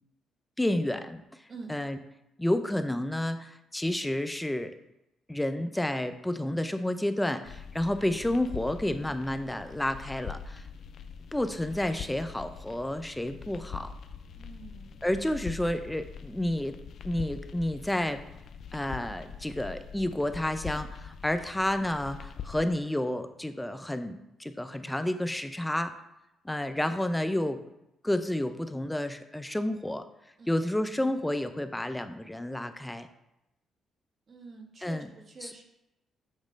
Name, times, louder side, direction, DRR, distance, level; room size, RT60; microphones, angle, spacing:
voice 1, 0.6-1.4 1.7-2.0 2.4-4.7 5.3-10.6 11.3-13.9 15.0-16.8 17.0-18.2 18.7-25.9 26.4-27.6 28.0-30.0 30.5-33.1 34.8-35.1 35.4-35.5, left 1 dB, 10° left, 9 dB, 0.5 m, -30 dB
sound 1, 7.5-22.6, left 7 dB, 65° left, 0.4 m, -43 dB
voice 2, 14.4-14.9 30.4-30.5 34.3-35.6, right 3 dB, 45° right, 2 dB, 1.3 m, -46 dB
7.3 x 3.1 x 5.1 m, 0.87 s
cardioid pair, 90°, 0 cm